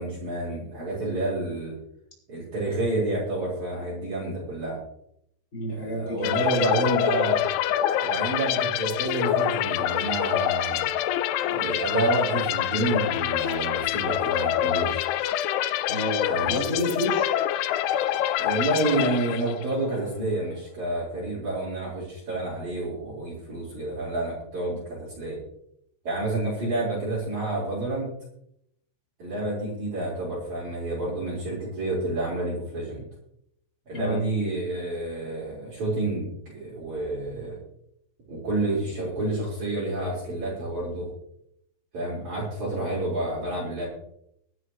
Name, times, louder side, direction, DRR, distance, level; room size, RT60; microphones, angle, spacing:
voice 1, 0.0-1.8 2.3-4.8 5.7-7.5 8.0-10.8 11.5-15.1 16.3-16.5 18.4-25.4 26.0-28.1 29.2-33.0 33.9-37.6 38.3-41.1 41.9-43.9, right 2 dB, 40° right, -6 dB, 5.7 m, -29 dB
voice 2, 5.5-6.3 6.7-6.8 15.9-17.3 33.9-34.2, left 1 dB, 15° left, -4 dB, 6.8 m, -29 dB
sound 1, 6.2-19.8, left 11 dB, 90° left, 3.2 m, -26 dB
24.0 x 9.8 x 3.1 m, 0.75 s
omnidirectional pair, 5.3 m